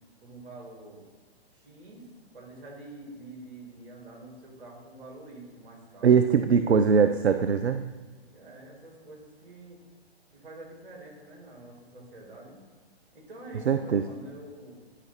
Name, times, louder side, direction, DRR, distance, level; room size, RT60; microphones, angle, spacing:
voice 1, 0.2-1.0 1.5-2.1 2.3-6.3 8.3-9.8 10.3-12.6 13.1-14.8, right 2 dB, 55° right, -2 dB, 2.7 m, -46 dB
voice 2, 6.0-7.9 13.7-14.0, right 6 dB, 80° right, 9 dB, 0.5 m, -21 dB
9.9 x 4.9 x 4.3 m, 1.4 s
figure-of-eight pair, 125°, 32 cm